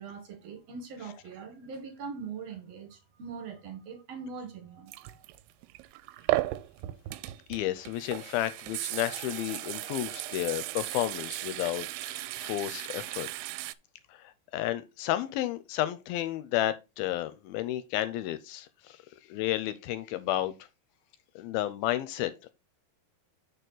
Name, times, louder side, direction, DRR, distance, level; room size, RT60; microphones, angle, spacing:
voice 1, 0.0-5.2, right 5 dB, 55° right, 1.9 m, -42 dB
sound 1, 4.9-13.7, right 18 dB, 85° right, 2.5 m, -36 dB
voice 2, 7.5-13.3 14.1-19.0 19.3-20.5 21.4-22.5, left 14 dB, 80° left, 2.2 m, -32 dB
6.7 x 6.4 x 3.9 m
omnidirectional pair, 4.7 m